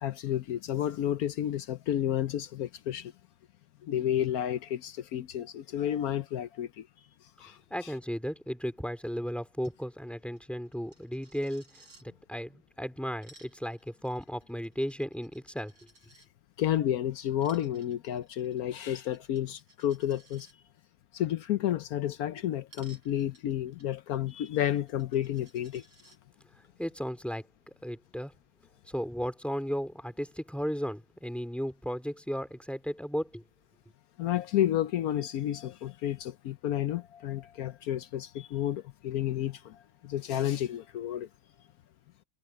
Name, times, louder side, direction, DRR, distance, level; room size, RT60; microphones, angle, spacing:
voice 1, 0.0-3.1 3.8-6.9 7.4-7.9 16.6-20.5 21.1-25.8 34.2-41.3, left 11 dB, 70° left, 0.9 m, -31 dB
voice 2, 7.7-11.6 12.0-15.7 26.8-27.5 27.8-28.3 28.9-33.4, equal, ahead, 2.1 m, -35 dB
Coin (dropping), 9.6-9.8 10.0-10.1 10.4-12.0 13.0-16.3 17.3-20.5 22.7-26.2, right 2 dB, 75° right, 8.7 m, -60 dB
omnidirectional pair, 2.1 m